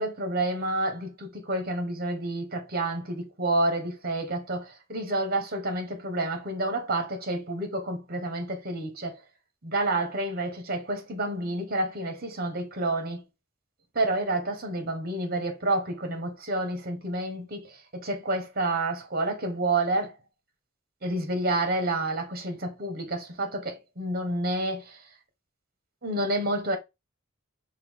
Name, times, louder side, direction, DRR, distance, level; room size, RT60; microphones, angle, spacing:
voice 1, 0.0-9.2 9.6-13.2 13.9-20.1 21.0-25.0 26.0-26.8, right 2 dB, 50° right, 1.3 m, -29 dB
5.4 x 2.4 x 3.6 m
head